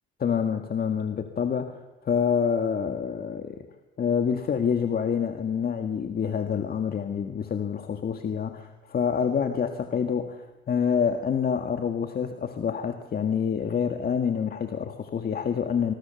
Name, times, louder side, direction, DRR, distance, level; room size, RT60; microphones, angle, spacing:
voice 1, 0.2-3.7 4.0-15.9, left 7 dB, 50° left, 6 dB, 1.8 m, -27 dB
24.5 x 22.0 x 7.0 m, 1.0 s
cardioid pair, 90°, 20 cm